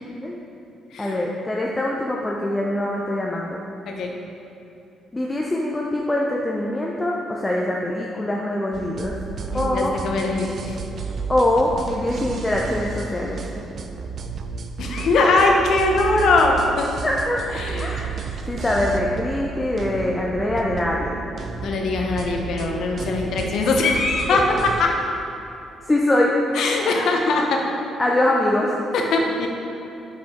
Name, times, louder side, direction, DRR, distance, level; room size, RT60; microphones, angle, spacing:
voice 1, 1.0-3.6 5.1-9.2 9.5-9.9 11.3-13.4 17.0-18.1 18.5-21.1 25.8-26.3 28.0-28.7, left 1 dB, 15° left, -2 dB, 0.5 m, -23 dB
sound 1, 8.7-24.8, right 5 dB, 55° right, 0.4 m, -32 dB
voice 2, 9.5-10.8 14.8-16.9 17.6-18.0 21.6-24.4 24.8-24.9 26.5-27.6 28.9-29.5, left 3 dB, 70° left, 1 dB, 0.8 m, -21 dB
5.7 x 4.9 x 4.2 m, 2.8 s
cardioid pair, 90°, 0 cm